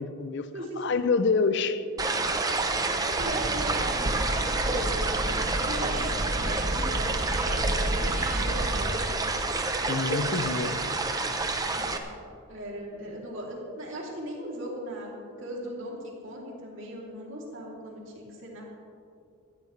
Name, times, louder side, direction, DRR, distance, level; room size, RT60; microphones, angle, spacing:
voice 1, 0.0-0.5 0.8-1.8 9.9-10.9, left 4 dB, 50° left, 11 dB, 0.5 m, -27 dB
sound 1, 2.0-12.0, right 3 dB, 15° right, 0.7 m, -29 dB
voice 2, 3.1-9.3 11.8-12.0 12.5-18.6, right 1 dB, 55° right, -3 dB, 3.1 m, -38 dB
sound 2, 3.2-8.9, right 1 dB, 40° right, 0.9 m, -31 dB
17.5 x 13.0 x 3.3 m, 2.4 s
head